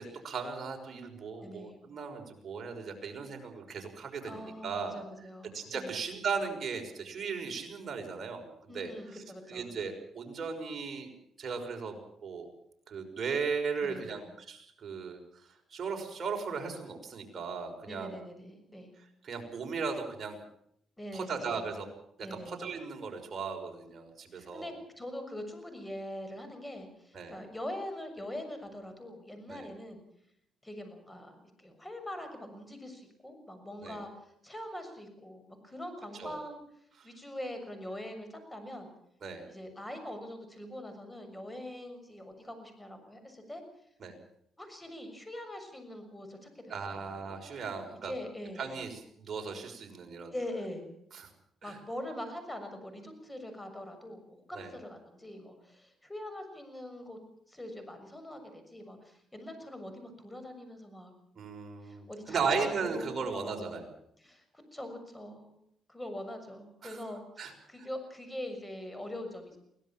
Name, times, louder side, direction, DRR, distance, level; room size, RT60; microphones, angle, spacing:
voice 1, 0.0-5.0 5.5-9.2 9.5-11.1 11.4-12.5 12.9-15.2 15.7-18.1 19.2-20.4 21.1-21.9 22.3-24.7 27.1-27.3 29.5-29.7 33.8-34.0 36.2-36.4 37.0-37.1 39.2-39.5 44.0-44.1 46.7-48.1 48.6-50.3 51.1-51.3 51.6-51.8 54.5-54.7 61.3-63.9 66.8-67.0 67.4-67.5 67.8-67.9, right 5 dB, 45° right, 3 dB, 6.0 m, -37 dB
voice 2, 1.4-1.8 4.3-6.0 8.7-9.7 13.8-14.2 17.9-18.9 21.0-21.5 22.2-22.6 24.3-30.0 30.6-36.6 37.0-38.9 39.5-43.6 44.6-47.1 47.9-48.6 50.3-50.9 51.6-57.2 57.5-61.1 61.8-63.8 64.2-65.6 65.9-69.6, left 1 dB, 10° left, 7 dB, 6.5 m, -43 dB
23.0 x 17.5 x 7.4 m, 0.73 s
cardioid pair, 90°, 0 cm